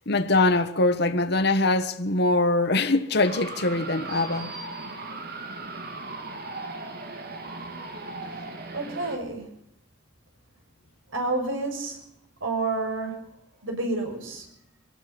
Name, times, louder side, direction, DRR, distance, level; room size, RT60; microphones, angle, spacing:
voice 1, 0.1-4.5, left 2 dB, 55° left, 1.5 m, -23 dB
sound 1, 3.2-9.2, right 3 dB, 50° right, 3.1 m, -37 dB
voice 2, 8.7-9.5 11.1-12.1 12.4-13.2 13.6-14.5, right 2 dB, 85° right, 6.7 m, -29 dB
23.5 x 18.0 x 7.1 m
head